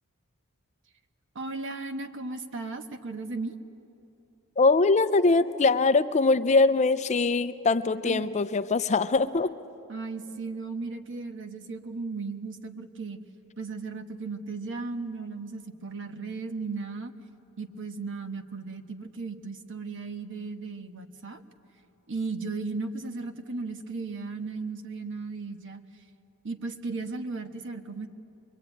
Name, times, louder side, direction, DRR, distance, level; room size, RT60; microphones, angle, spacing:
voice 1, 1.3-3.6 8.0-8.3 9.9-13.2 13.6-17.1 17.6-21.4 22.1-25.8 26.4-28.1, right 3 dB, 55° right, 8 dB, 1.3 m, -36 dB
voice 2, 4.6-9.5, left 3 dB, 30° left, 12 dB, 0.5 m, -22 dB
23.5 x 23.0 x 9.1 m, 2.8 s
head